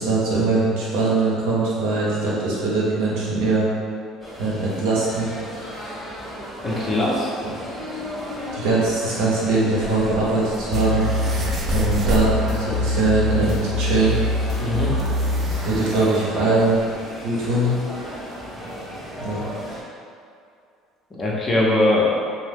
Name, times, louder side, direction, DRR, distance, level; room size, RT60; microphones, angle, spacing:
voice 1, 0.0-3.7 4.4-5.3 7.4-7.5 8.5-11.1 11.7-14.2 15.6-16.9 17.2-17.8 19.2-19.4, right 2 dB, 75° right, -6 dB, 0.8 m, -21 dB
sound 1, 4.2-19.8, equal, 5° left, 1.0 m, -34 dB
voice 2, 6.6-7.5 14.6-14.9 21.1-22.2, left 1 dB, 30° left, -4 dB, 0.7 m, -21 dB
sound 2, 10.7-15.7, left 1 dB, 55° left, 0.4 m, -24 dB
sound 3, 10.7-12.4 13.8-13.9 14.1-14.2 14.9-16.2, right 1 dB, 40° right, 0.4 m, -30 dB
2.6 x 2.1 x 3.5 m, 2.3 s
hypercardioid pair, 65°, 0 cm